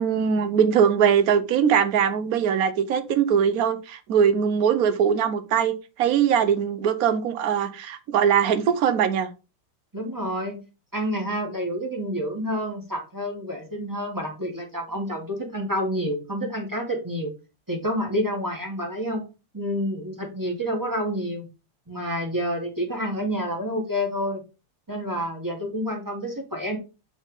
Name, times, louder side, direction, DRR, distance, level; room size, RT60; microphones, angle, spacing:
voice 1, 0.0-9.3, right 8 dB, 60° right, 1.2 m, -21 dB
voice 2, 9.9-10.6 10.9-17.3 17.7-19.3 19.5-21.5 21.9-24.4 24.9-26.8, equal, 10° right, 1.8 m, -28 dB
8.0 x 4.4 x 4.0 m
omnidirectional pair, 2.0 m